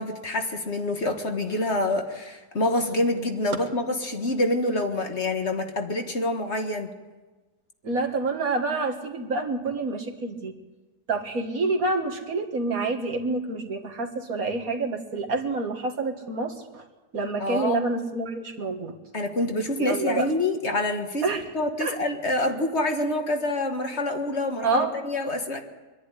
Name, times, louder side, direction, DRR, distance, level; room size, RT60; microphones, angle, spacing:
voice 1, 0.0-6.9 17.4-17.8 19.1-21.3 21.5-25.6, left 1 dB, 45° left, 5 dB, 1.8 m, -26 dB
voice 2, 7.8-10.5 11.1-16.8 17.1-19.0 19.8-20.3 21.2-21.4 21.8-21.9 24.6-24.9, right 3 dB, 60° right, 3 dB, 2.1 m, -28 dB
24.0 x 11.0 x 9.9 m, 1.2 s
omnidirectional pair, 1.7 m